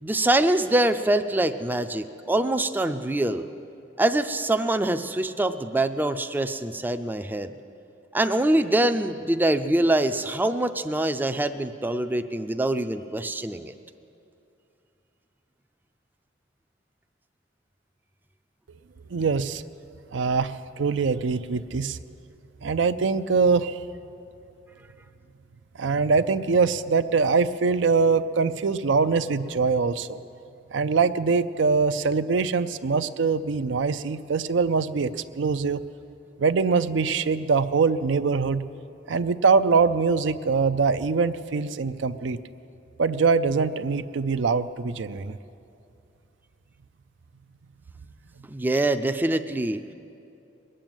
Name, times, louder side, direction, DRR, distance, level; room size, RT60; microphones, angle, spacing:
voice 1, 0.0-3.5 4.0-7.5 8.1-13.7 48.5-49.8, right 1 dB, 10° right, 8 dB, 0.4 m, -24 dB
voice 2, 19.1-19.6 20.1-22.0 22.6-23.8 25.8-30.2 30.7-35.8 36.4-38.6 39.1-42.4 43.0-45.4, right 4 dB, 75° right, 12 dB, 0.5 m, -23 dB
21.5 x 7.6 x 8.9 m, 2.7 s
head